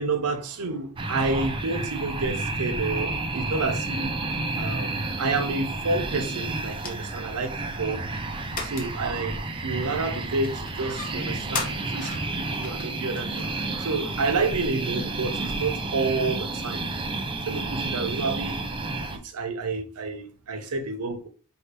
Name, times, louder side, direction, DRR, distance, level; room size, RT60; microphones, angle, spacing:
voice 1, 0.0-8.1 8.6-16.8 17.4-18.6 18.9-21.3, right 3 dB, 85° right, 0.7 m, -29 dB
sound 1, 1.0-19.2, right 2 dB, 25° right, 0.5 m, -31 dB
sound 2, 2.2-15.6, left 3 dB, 40° left, 1.0 m, -41 dB
4.3 x 2.8 x 3.4 m
head